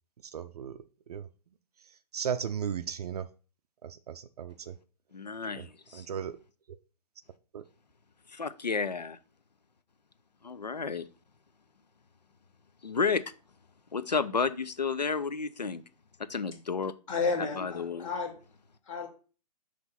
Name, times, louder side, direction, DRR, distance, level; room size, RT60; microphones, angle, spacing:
voice 1, 0.2-0.8 1.1-1.3 2.1-3.3 3.8-4.7 5.5-5.6 5.9-6.4 7.5-7.6, right 8 dB, 70° right, 0.4 m, -35 dB
voice 2, 5.1-6.1 8.3-9.2 10.4-11.1 12.8-13.2 13.9-15.8 16.3-16.9 17.4-18.1, left 5 dB, 90° left, 0.5 m, -31 dB
voice 3, 17.1-18.4 18.9-19.1, left 4 dB, 50° left, 1.9 m, -31 dB
5.9 x 3.1 x 5.5 m
figure-of-eight pair, 115°, 21 cm